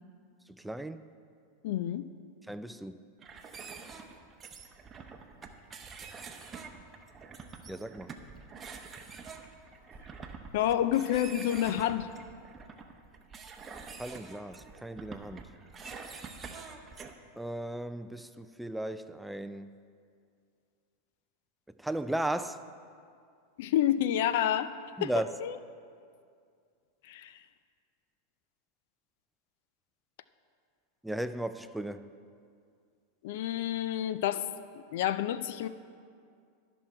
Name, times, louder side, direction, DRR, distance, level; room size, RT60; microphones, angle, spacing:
voice 1, 0.5-1.1 2.5-3.0 7.7-8.1 14.0-15.4 17.4-19.7 21.8-22.6 25.0-25.3 31.0-32.1, right 1 dB, 5° right, 11 dB, 0.3 m, -36 dB
voice 2, 1.6-2.0 10.5-12.1 23.6-25.1 25.4-25.5 27.0-27.3 33.2-35.7, left 11 dB, 70° left, 13 dB, 0.4 m, -29 dB
sound 1, 3.2-17.1, right 5 dB, 25° right, 0.8 m, -46 dB
12.5 x 6.1 x 4.4 m, 2.3 s
hypercardioid pair, 110°, 0 cm